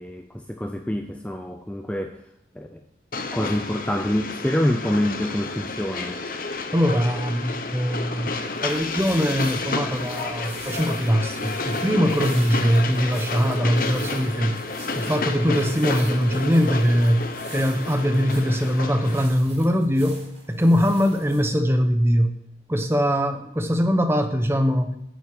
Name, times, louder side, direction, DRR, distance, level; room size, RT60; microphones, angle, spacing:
voice 1, 0.0-2.2 2.6-2.8 3.3-6.2, left 1 dB, 5° left, 5 dB, 0.6 m, -26 dB
Train, 3.1-19.3, left 3 dB, 50° left, 1.1 m, -31 dB
voice 2, 6.7-8.3 8.6-14.6 15.0-22.4 22.7-25.0, equal, 15° right, 7 dB, 0.9 m, -22 dB
sound 1, 8.4-21.4, right 2 dB, 40° right, 5.1 m, -45 dB
9.5 x 8.0 x 8.5 m, 0.78 s
head